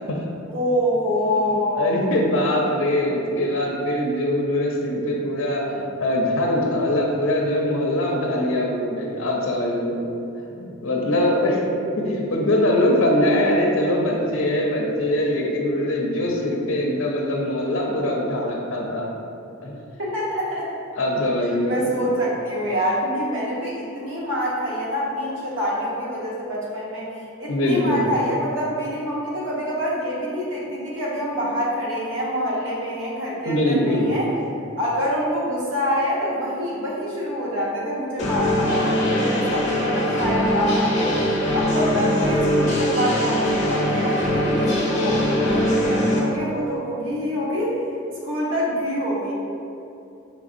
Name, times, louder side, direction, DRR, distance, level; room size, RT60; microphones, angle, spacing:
voice 1, 0.5-2.1 20.0-20.7 21.6-34.3 34.8-41.3 41.5-47.8 48.2-49.3, equal, 60° right, -5 dB, 0.9 m, -26 dB
voice 2, 1.8-10.0 10.5-11.6 12.0-19.1 19.6-19.7 20.9-22.0 27.5-28.0 33.4-34.1, left 1 dB, 65° left, -1 dB, 0.6 m, -22 dB
sound 1, 38.2-46.2, equal, 35° left, 0.7 m, -22 dB
5.1 x 3.3 x 2.5 m, 2.7 s
head